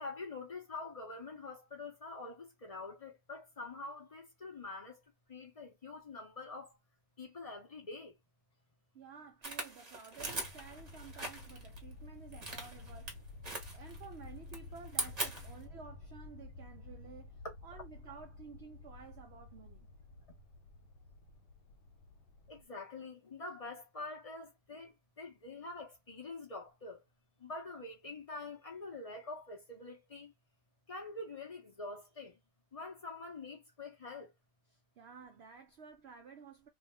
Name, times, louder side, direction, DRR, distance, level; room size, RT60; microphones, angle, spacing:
voice 1, 0.0-5.0 5.3-6.7 7.2-8.1 22.5-27.0 27.4-30.3 30.9-32.3 32.7-34.3, left 3 dB, 50° left, 0.4 m, -46 dB
voice 2, 8.9-13.2 13.7-19.9 35.0-36.7, right 6 dB, 80° right, 0.5 m, -53 dB
sound 1, 9.4-11.8 12.3-13.1 13.4-14.1 14.4-15.6, right 2 dB, 30° right, 0.9 m, -41 dB
sound 2, 10.2-22.6, left 3 dB, 90° left, 1.2 m, -52 dB
2.7 x 2.3 x 3.2 m
omnidirectional pair, 1.8 m